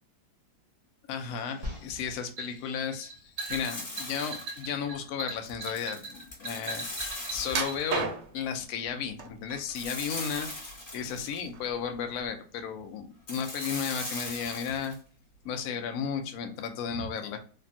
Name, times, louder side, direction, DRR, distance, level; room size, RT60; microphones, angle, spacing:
voice 1, 1.1-6.8 7.3-8.1 8.3-10.5 10.9-14.9 15.4-17.4, left 7 dB, 80° left, 5 dB, 0.8 m, -34 dB
sound 1, 1.6-7.8, right 2 dB, 45° right, 0.7 m, -39 dB
sound 2, 3.4-4.8 5.5-8.0 9.7-11.5 13.3-15.0, left 2 dB, 30° left, 1.3 m, -40 dB
sound 3, 7.5-8.5 9.2-9.9 10.3-11.2 11.5-11.7 12.3-12.4, right 4 dB, 70° right, 1.2 m, -33 dB
3.3 x 2.2 x 2.5 m, 0.42 s
omnidirectional pair, 2.1 m